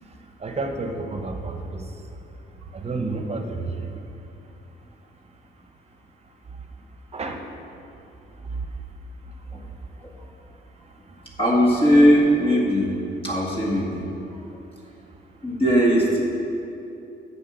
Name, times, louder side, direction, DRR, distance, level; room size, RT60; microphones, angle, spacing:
voice 1, 0.4-1.8 2.7-3.9 7.1-7.4, right 3 dB, 30° right, 4 dB, 1.1 m, -30 dB
voice 2, 11.4-13.0 13.2-14.1 15.4-16.2, equal, 30° left, -4 dB, 1.9 m, -19 dB
7.6 x 7.5 x 6.1 m, 2.8 s
cardioid pair, 90°, 20 cm